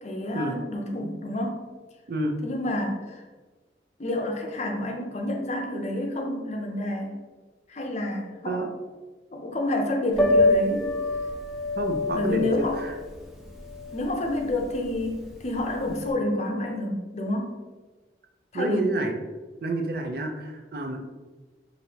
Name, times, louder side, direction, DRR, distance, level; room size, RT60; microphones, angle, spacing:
voice 1, 0.0-1.7 2.4-3.2 4.0-7.1 7.7-8.7 9.3-10.9 12.1-12.8 13.9-17.6 18.5-18.9, left 1 dB, 40° left, 2 dB, 0.6 m, -29 dB
Piano, 10.1-16.1, left 2 dB, ahead, 0.6 m, -26 dB
voice 2, 11.8-12.9 18.5-19.1 19.6-21.1, right 2 dB, 55° right, 3 dB, 0.5 m, -29 dB
5.1 x 2.7 x 2.8 m, 1.3 s
head